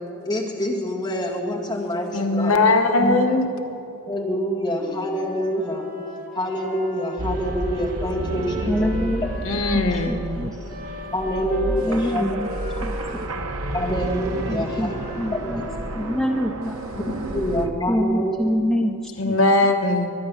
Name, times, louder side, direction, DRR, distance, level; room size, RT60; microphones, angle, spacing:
voice 1, 0.2-2.6 3.0-3.2 4.1-5.8 6.3-9.3 11.1-12.4 13.7-15.0 15.3-15.7 16.9-17.0 17.3-18.4, equal, 20° left, -3 dB, 2.0 m, -26 dB
voice 2, 2.1-3.4 9.5-10.2 19.2-20.1, left 2 dB, 70° left, 5 dB, 1.1 m, -19 dB
Wind instrument woodwind instrument, 4.7-10.2 10.7-16.5, equal, 40° right, 1.7 m, -37 dB
sound 1, 7.2-17.7, right 1 dB, 75° right, 1.1 m, -31 dB
voice 3, 8.7-9.2 9.7-10.6 11.9-12.5 12.8-13.0 14.5-14.9 15.2-15.6 16.0-16.8 17.9-19.0 19.2-19.4, equal, ahead, 2 dB, 0.4 m, -25 dB
22.5 x 9.9 x 6.3 m, 2.9 s
head